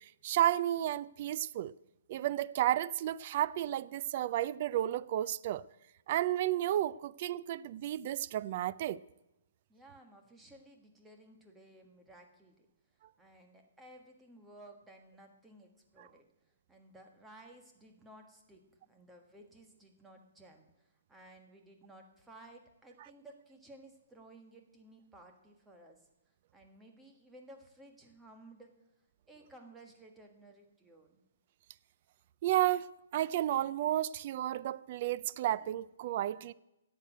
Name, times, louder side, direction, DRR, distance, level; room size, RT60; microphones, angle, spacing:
voice 1, 0.2-1.7 2.1-5.6 6.1-9.0 32.4-32.9 33.1-36.5, right 13 dB, 35° right, 0.4 m, -32 dB
voice 2, 9.7-12.7 13.2-16.3 16.7-26.1 26.5-28.7 29.3-31.2, right 1 dB, 5° right, 1.4 m, -56 dB
11.0 x 8.4 x 9.1 m
hypercardioid pair, 165°, 0 cm